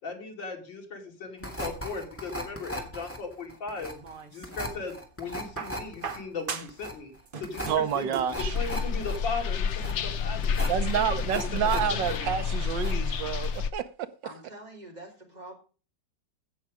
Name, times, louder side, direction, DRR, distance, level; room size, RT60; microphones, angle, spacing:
voice 1, 0.0-3.9 4.3-12.3, left 4 dB, 90° left, 3.4 m, -38 dB
sound 1, 1.4-12.2 12.5-13.2 13.4-13.6, equal, 5° left, 2.1 m, -38 dB
sound 2, 3.8-4.8 5.6-6.9 7.2-8.4 9.5-9.6, right 6 dB, 40° right, 0.8 m, -39 dB
voice 2, 7.7-8.6 10.7-14.1, right 9 dB, 80° right, 1.6 m, -29 dB
sound 3, 8.4-13.7, left 6 dB, 60° left, 0.7 m, -29 dB
voice 3, 14.2-15.6, right 1 dB, 20° right, 3.4 m, -45 dB
16.0 x 6.4 x 4.9 m
omnidirectional pair, 2.0 m